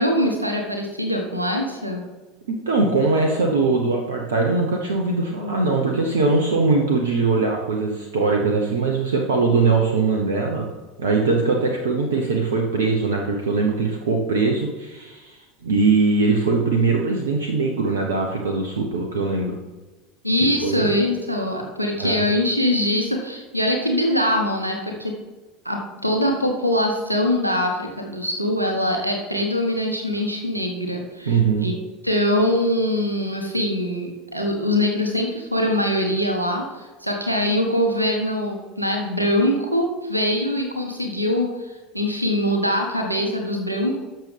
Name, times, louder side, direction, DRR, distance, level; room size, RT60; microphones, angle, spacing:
voice 1, 0.0-2.0 20.2-25.1 25.6-31.7 32.0-44.0, left 1 dB, 90° right, 3 dB, 1.2 m, -23 dB
voice 2, 2.7-10.7 11.0-19.6 20.4-20.9 22.0-22.2 31.2-31.7, right 3 dB, 70° right, 2 dB, 0.9 m, -21 dB
12.0 x 6.7 x 3.4 m, 1.2 s
figure-of-eight pair, 75°, 0 cm